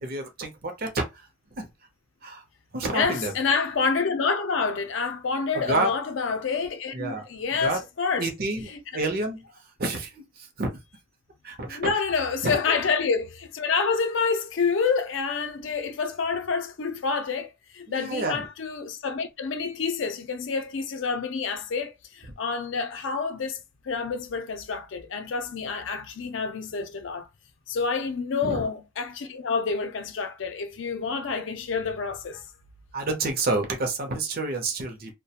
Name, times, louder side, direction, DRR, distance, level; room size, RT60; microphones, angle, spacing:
voice 1, 0.0-1.7 2.2-2.4 2.7-3.3 5.5-5.9 6.9-7.3 7.6-7.8 8.2-9.4 9.8-10.7 11.4-11.9 12.4-12.7 17.9-18.5 28.4-28.7 32.9-35.1, right 2 dB, 50° right, 0.7 m, -29 dB
voice 2, 2.9-8.3 8.7-8.8 11.7-23.6 23.8-27.3 27.7-32.5, left 5 dB, 65° left, 0.5 m, -28 dB
2.3 x 2.1 x 2.8 m
head